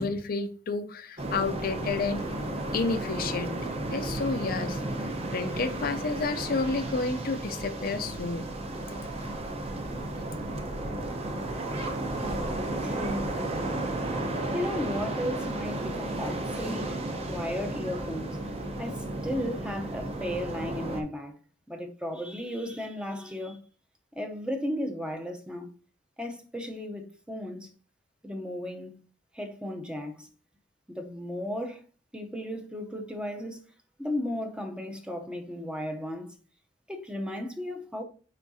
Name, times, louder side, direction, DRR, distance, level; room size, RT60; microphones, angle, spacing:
voice 1, 0.0-2.2 2.7-3.6 3.9-8.5, left 4 dB, 50° left, 0.5 m, -30 dB
sound 1, 1.2-21.0, right 1 dB, 35° right, 0.9 m, -33 dB
voice 2, 12.8-13.3 13.8-13.9 14.5-21.4 21.7-23.6 24.2-25.7 26.2-27.7 28.2-29.0 29.3-30.3 30.9-31.8 32.1-33.6 34.0-36.3 36.9-38.0, left 1 dB, 5° right, 0.7 m, -35 dB
9.3 x 3.7 x 2.7 m
head